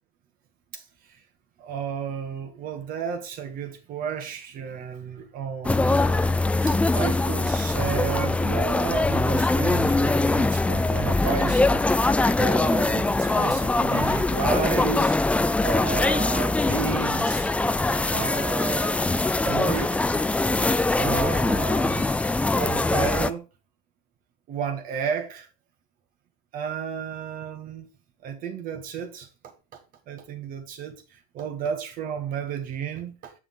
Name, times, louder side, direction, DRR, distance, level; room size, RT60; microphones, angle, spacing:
voice 1, 1.6-15.2 15.6-17.5 18.1-19.0 19.4-20.1 21.0-22.0 22.6-23.4 24.5-25.5 26.5-27.9 28.2-29.3 29.7-29.8 30.1-33.3, right 7 dB, 45° right, 2.0 m, -32 dB
sound 1, 5.6-23.3, left 2 dB, 5° left, 0.5 m, -22 dB
7.6 x 5.9 x 4.0 m
hypercardioid pair, 85°, 20 cm